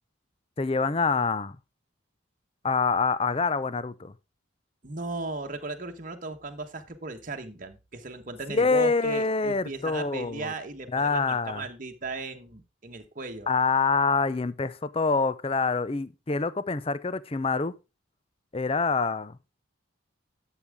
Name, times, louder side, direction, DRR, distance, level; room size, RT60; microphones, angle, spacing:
voice 1, 0.6-1.6 2.6-4.1 8.5-10.5 10.9-11.7 13.5-17.7 18.5-19.4, left 4 dB, 30° left, 0.5 m, -26 dB
voice 2, 4.8-13.5, right 3 dB, 40° right, 1.2 m, -36 dB
12.0 x 7.5 x 3.5 m
head